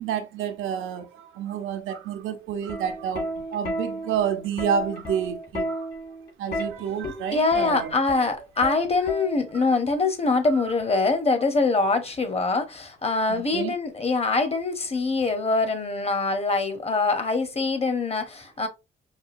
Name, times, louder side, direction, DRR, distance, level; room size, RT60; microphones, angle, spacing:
voice 1, 0.0-5.9 6.4-7.9 13.3-13.7, right 8 dB, 85° right, 0.8 m, -29 dB
Plucked string instrument, 2.7-9.7 10.8-11.1, equal, 50° left, 1.8 m, -33 dB
voice 2, 7.0-18.7, left 3 dB, 30° left, 1.0 m, -24 dB
4.9 x 2.2 x 2.6 m
cardioid pair, 90°, 20 cm